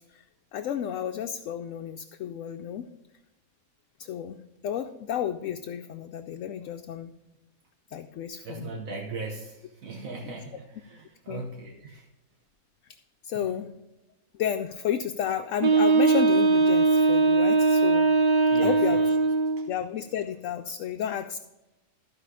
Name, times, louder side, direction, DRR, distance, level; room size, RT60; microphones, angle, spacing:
voice 1, 0.5-2.9 4.0-7.1 7.9-8.7 10.3-10.4 11.3-11.5 13.2-13.7 14.4-18.1 18.6-19.0 19.7-21.4, left 9 dB, 70° left, 6 dB, 0.9 m, -32 dB
voice 2, 8.4-12.1 13.3-13.6 18.4-19.0 19.6-19.7, right 3 dB, 70° right, 3 dB, 1.4 m, -39 dB
Wind instrument woodwind instrument, 15.6-19.7, right 3 dB, 45° right, 0.5 m, -21 dB
14.0 x 5.0 x 4.8 m, 1.0 s
omnidirectional pair, 1.5 m